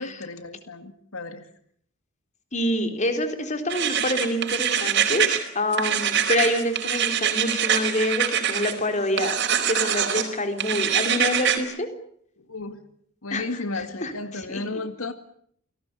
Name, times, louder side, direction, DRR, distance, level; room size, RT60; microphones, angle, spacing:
voice 1, 0.0-1.5 12.5-12.8 13.2-15.1, left 3 dB, 90° left, 9 dB, 2.0 m, -33 dB
voice 2, 2.5-9.4 9.7-11.9 13.3-13.4 13.7-14.8, left 1 dB, 35° left, 7 dB, 4.0 m, -27 dB
sound 1, 3.7-5.4 5.7-8.7 9.2-10.3 10.6-11.6, right 9 dB, 55° right, 4.6 m, -24 dB
29.0 x 19.0 x 8.4 m, 0.66 s
head